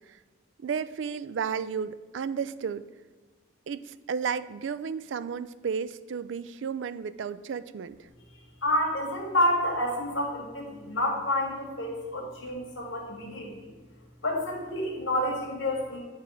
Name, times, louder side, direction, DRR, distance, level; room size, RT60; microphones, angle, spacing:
voice 1, 0.6-2.9 3.7-8.0, right 6 dB, 70° right, 15 dB, 0.3 m, -33 dB
voice 2, 8.3-13.7 14.2-16.0, left 1 dB, 70° left, -3 dB, 1.7 m, -29 dB
9.8 x 3.4 x 6.4 m, 1.3 s
head